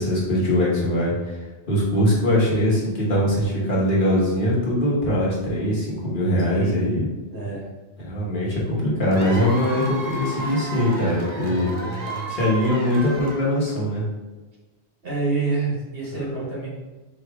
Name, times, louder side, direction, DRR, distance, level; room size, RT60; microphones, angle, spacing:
voice 1, 0.0-1.4 1.7-7.1 8.0-11.7 12.3-14.0, left 1 dB, 50° left, -6 dB, 1.3 m, -22 dB
voice 2, 6.5-6.8 7.3-7.7 11.3-12.4 15.0-16.7, right 3 dB, 60° right, -5 dB, 1.6 m, -28 dB
Cheering / Applause / Crowd, 9.1-13.8, right 2 dB, 45° right, 0.8 m, -33 dB
4.8 x 3.1 x 3.4 m, 1.2 s
omnidirectional pair, 1.1 m